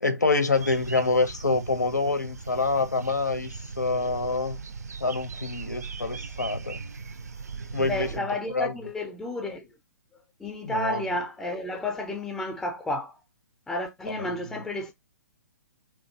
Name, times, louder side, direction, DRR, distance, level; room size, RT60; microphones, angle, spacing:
voice 1, 0.0-4.6 5.0-6.8 7.7-8.2 8.5-8.8 10.6-11.0 14.2-14.3, left 3 dB, 80° left, 0.6 m, -26 dB
sound 1, 0.5-8.2, right 4 dB, 70° right, 0.4 m, -39 dB
voice 2, 7.8-9.7 10.4-13.2 13.7-14.9, left 1 dB, 5° left, 0.4 m, -31 dB
2.8 x 2.2 x 2.6 m
figure-of-eight pair, 125°, 9 cm